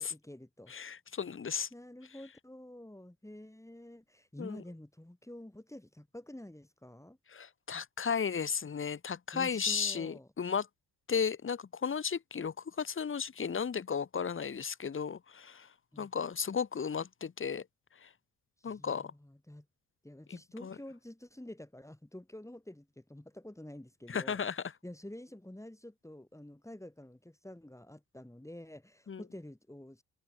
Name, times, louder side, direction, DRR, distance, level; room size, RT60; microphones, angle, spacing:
voice 1, 0.0-0.7 1.7-7.2 9.3-10.3 15.9-16.1 18.6-19.7 20.0-24.4 24.8-30.0, left 1 dB, 5° left, 6.5 m, -49 dB
voice 2, 0.7-1.7 4.4-4.6 7.3-10.7 11.1-17.7 17.9-18.1 18.6-19.1 20.3-20.7 24.1-24.6 29.1-29.2, left 6 dB, 30° left, 1.5 m, -35 dB
hypercardioid pair, 50°, 44 cm